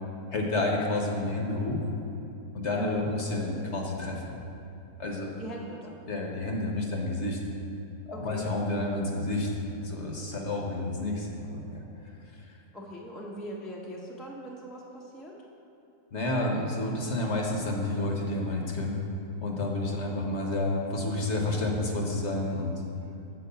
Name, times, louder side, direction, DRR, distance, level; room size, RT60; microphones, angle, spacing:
voice 1, 0.3-1.9 2.5-4.2 5.0-5.3 6.1-7.4 8.1-9.5 9.8-12.6 16.1-19.0 19.4-22.7, left 2 dB, 55° left, 0 dB, 1.0 m, -30 dB
voice 2, 5.4-6.0 8.1-8.4 12.7-15.4, equal, ahead, -2 dB, 0.3 m, -41 dB
6.8 x 4.6 x 6.6 m, 2.9 s
omnidirectional pair, 1.7 m